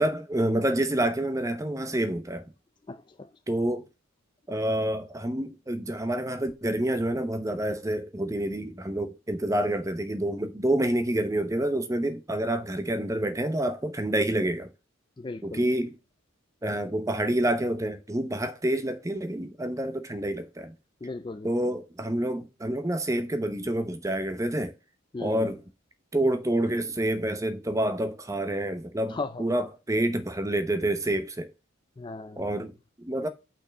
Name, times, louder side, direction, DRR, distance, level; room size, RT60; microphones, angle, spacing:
voice 1, 0.0-2.5 3.5-3.9 4.5-14.7 15.4-16.0 16.6-20.7 21.4-24.7 25.2-25.6 26.1-31.5 32.4-33.3, right 1 dB, 15° right, 0.8 m, -28 dB
voice 2, 2.9-3.3 15.2-15.6 21.0-21.7 25.1-25.5 29.1-29.4 32.0-32.4, left 3 dB, 20° left, 0.3 m, -37 dB
5.6 x 4.5 x 6.4 m
head